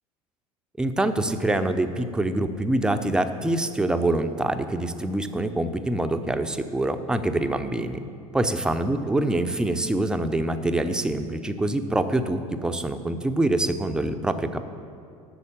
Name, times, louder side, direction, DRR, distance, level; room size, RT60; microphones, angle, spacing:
voice 1, 0.8-8.0 8.3-14.6, right 1 dB, 5° right, 8 dB, 0.5 m, -25 dB
8.4 x 6.7 x 7.2 m, 2.3 s
figure-of-eight pair, 70°, 19 cm